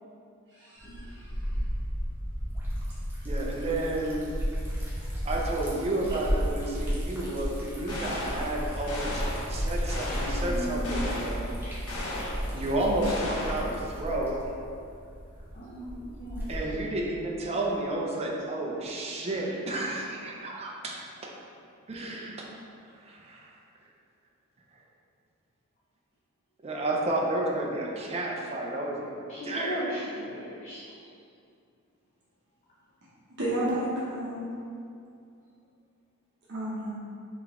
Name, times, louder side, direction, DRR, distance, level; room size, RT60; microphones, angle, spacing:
voice 1, 0.5-1.3 33.4-34.5 36.5-36.9, right 1 dB, 55° right, -8 dB, 0.9 m, -32 dB
Liquid, 0.8-16.9, equal, 10° right, 1.0 m, -33 dB
voice 2, 3.2-4.3 5.2-9.2 9.5-11.5 12.5-14.5 16.5-21.3 21.9-22.5 23.0-23.5 26.6-29.1 29.4-29.9 33.7-33.8, right 1 dB, 30° right, -2 dB, 0.5 m, -31 dB
sound 1, 7.9-8.5 8.9-9.5 9.9-10.5 10.8-11.4 11.9-12.4 13.0-13.7, left 1 dB, 80° left, 1.0 m, -35 dB
voice 3, 10.4-11.1 11.6-11.7 15.5-16.5 29.3-31.0, equal, 35° left, -8 dB, 0.6 m, -37 dB
3.8 x 3.4 x 3.6 m, 2.4 s
head